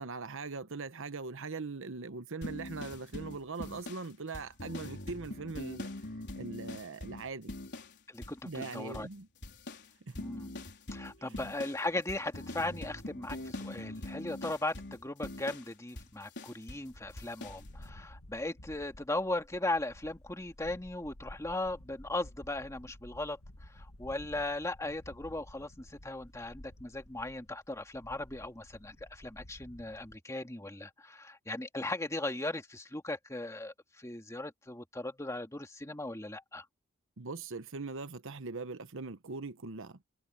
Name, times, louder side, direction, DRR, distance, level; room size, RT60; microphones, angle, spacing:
voice 1, 0.0-5.9 6.4-7.5 8.4-9.3 10.0-10.2 11.2-11.5 37.2-40.0, right 4 dB, 60° right, 1.0 m, -41 dB
sound 1, 2.4-8.0 8.2-9.2 9.4-16.9 17.2-17.6, left 1 dB, 55° left, 3.8 m, -43 dB
voice 2, 8.1-9.1 10.2-10.5 10.9-23.4 23.7-36.7, left 2 dB, 15° left, 2.0 m, -38 dB
sound 2, 16.9-30.2, left 1 dB, 85° left, 1.9 m, -53 dB
head